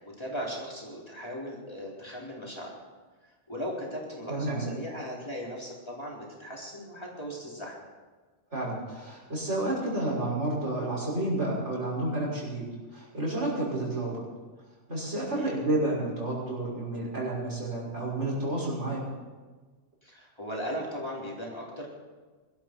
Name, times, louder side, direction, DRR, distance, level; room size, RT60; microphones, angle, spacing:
voice 1, 0.2-2.7 3.5-7.8 15.4-15.5 20.0-21.9, equal, 20° left, -4 dB, 3.9 m, -37 dB
voice 2, 4.3-4.7 8.5-12.6 12.9-14.2 14.9-19.0, right 2 dB, 75° right, -5 dB, 6.3 m, -30 dB
23.0 x 13.0 x 4.6 m, 1.4 s
omnidirectional pair, 1.2 m